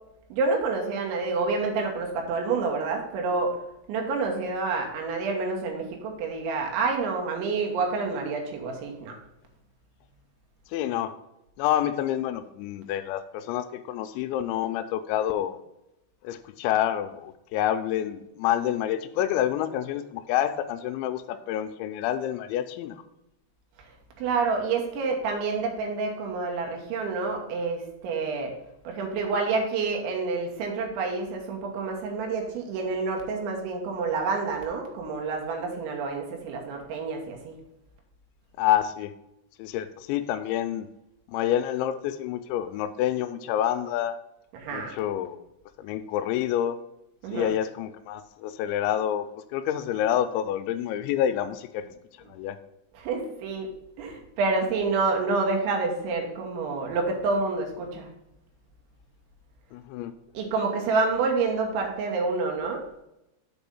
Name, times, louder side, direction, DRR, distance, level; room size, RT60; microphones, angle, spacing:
voice 1, 0.3-3.6 3.9-9.2 24.2-28.5 28.8-37.5 44.5-44.9 47.2-47.5 53.0-53.7 54.0-58.1 60.3-62.8, right 4 dB, 75° right, 1 dB, 3.4 m, -28 dB
voice 2, 10.7-11.1 11.6-15.6 16.2-23.0 38.6-39.1 39.6-40.9 41.3-44.2 44.7-45.4 45.8-46.8 47.3-49.3 49.5-51.8 52.3-52.6 59.7-60.1, left 11 dB, 85° left, 9 dB, 2.7 m, -28 dB
7.0 x 4.9 x 5.4 m, 0.88 s
omnidirectional pair, 5.7 m